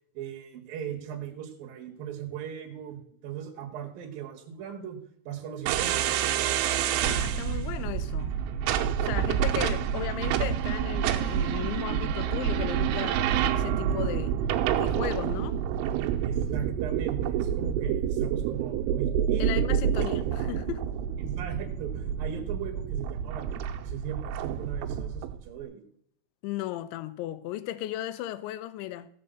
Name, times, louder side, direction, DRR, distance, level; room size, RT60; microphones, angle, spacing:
voice 1, 0.1-5.0 5.2-6.2 12.2-12.3 16.2-19.6 21.2-25.8, right 8 dB, 60° right, 2.7 m, -38 dB
sound 1, 5.7-25.4, right 9 dB, 80° right, 3.2 m, -28 dB
voice 2, 7.0-8.3 9.0-14.4 14.8-15.6 19.4-20.9 26.4-29.1, left 14 dB, 80° left, 2.8 m, -36 dB
16.5 x 5.5 x 7.9 m
omnidirectional pair, 6.0 m